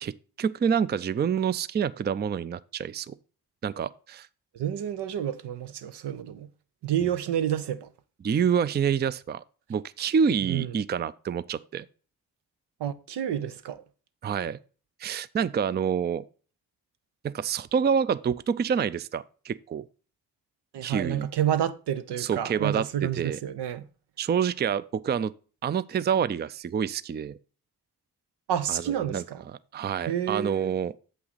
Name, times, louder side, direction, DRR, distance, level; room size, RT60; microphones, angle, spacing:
voice 1, 0.0-3.1 3.6-4.3 8.2-9.4 9.7-11.9 14.2-14.6 15.0-16.2 17.2-19.9 20.8-21.3 22.2-23.4 24.2-25.3 25.6-27.4 28.7-29.2 29.7-30.9, right 7 dB, 25° right, 0.4 m, -27 dB
voice 2, 4.5-6.5 6.8-7.9 10.4-10.7 12.8-13.8 20.7-23.9 28.5-29.4 30.1-30.7, right 10 dB, 80° right, 0.7 m, -29 dB
7.5 x 5.6 x 4.0 m
supercardioid pair, 45°, 40 cm